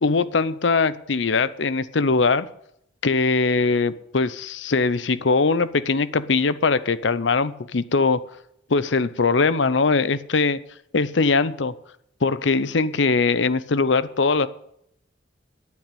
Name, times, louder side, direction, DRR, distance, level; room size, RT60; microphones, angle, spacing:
voice 1, 0.0-2.5 3.0-8.2 8.7-10.6 10.9-11.7 12.2-14.5, left 4 dB, 70° left, 16 dB, 0.7 m, -21 dB
9.5 x 8.8 x 8.4 m, 0.75 s
head